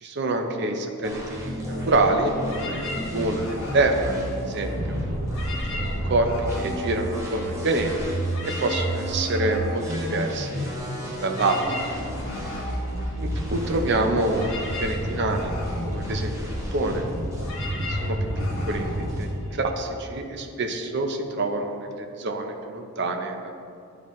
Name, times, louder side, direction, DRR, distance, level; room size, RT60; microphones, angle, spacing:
voice 1, 0.0-5.0 5.7-6.3 6.6-8.2 8.4-11.6 13.2-15.5 15.9-16.4 16.7-17.0 17.9-23.5, right 2 dB, 55° right, 4 dB, 0.6 m, -27 dB
sound 1, 1.0-19.3, equal, 15° right, 1.1 m, -30 dB
sound 2, 2.4-4.8 5.2-7.8 8.0-20.0, left 2 dB, 70° left, 1.2 m, -39 dB
10.0 x 3.9 x 3.1 m, 2.6 s
head